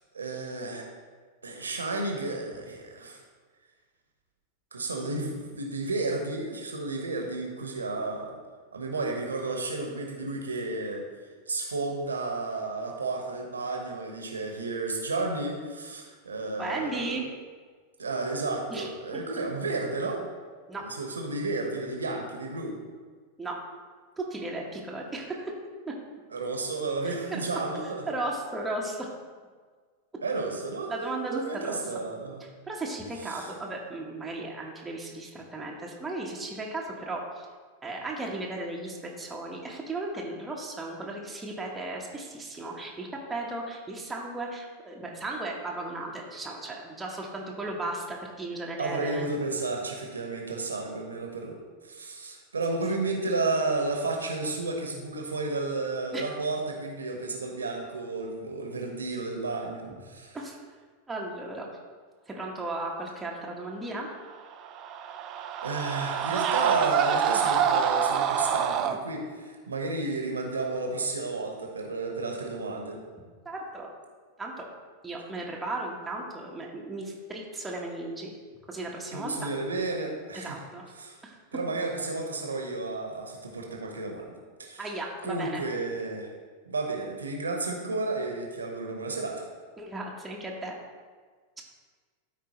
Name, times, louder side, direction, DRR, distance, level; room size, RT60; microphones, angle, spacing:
voice 1, 0.1-0.9 1.4-3.2 4.7-8.4 8.7-11.0 11.5-17.2 18.0-20.2 20.8-22.8 26.3-28.2 30.2-32.4 33.2-33.5 48.8-51.6 51.8-60.4 65.6-73.0 79.1-80.6 81.0-81.2 81.5-84.3 84.6-84.9 85.2-86.3 86.7-89.5, right 3 dB, 75° right, 1 dB, 1.3 m, -32 dB
voice 2, 16.6-17.2 18.7-18.9 20.7-20.9 23.4-23.6 24.2-25.5 25.9-26.0 27.0-27.4 28.1-29.1 30.9-31.8 32.4-37.5 37.8-49.3 56.1-56.3 60.3-60.6 61.1-61.7 62.3-64.1 73.4-73.9 74.4-74.7 75.0-78.3 78.7-79.3 80.3-80.8 81.2-81.4 84.8-85.6 89.8-90.7 91.6-91.7, right 2 dB, 10° right, -2 dB, 1.2 m, -35 dB
Screaming, 64.5-69.0, right 8 dB, 35° right, 0.5 m, -26 dB
13.0 x 4.6 x 3.1 m, 1.5 s
figure-of-eight pair, 90°, 0 cm